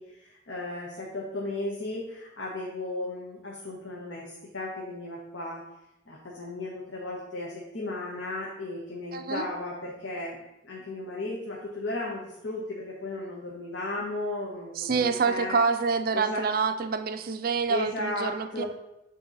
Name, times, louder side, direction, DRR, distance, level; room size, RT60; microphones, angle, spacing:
voice 1, 0.0-5.7 6.1-15.6 16.1-16.5 17.7-18.6, left 2 dB, 70° left, -4 dB, 1.1 m, -35 dB
voice 2, 9.1-9.5 14.8-18.6, right 5 dB, 45° right, 9 dB, 0.4 m, -27 dB
8.7 x 3.0 x 3.9 m, 0.89 s
head